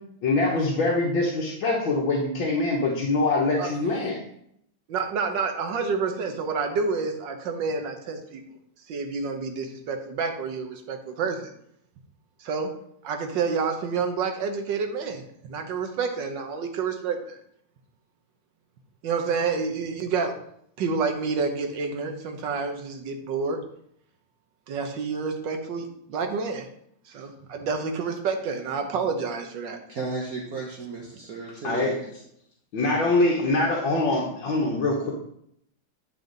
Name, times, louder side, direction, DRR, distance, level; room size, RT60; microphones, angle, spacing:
voice 1, 0.2-4.2 31.6-31.9 32.7-35.1, left 2 dB, 75° left, -4 dB, 1.9 m, -24 dB
voice 2, 4.9-8.4 8.9-11.5 12.4-12.7 13.0-17.4 19.0-20.3 20.8-23.6 24.7-26.7 27.1-29.8, right 5 dB, 70° right, 5 dB, 1.6 m, -29 dB
voice 3, 29.9-32.1, right 3 dB, 55° right, -1 dB, 1.3 m, -34 dB
9.0 x 5.4 x 3.9 m, 0.71 s
omnidirectional pair, 2.1 m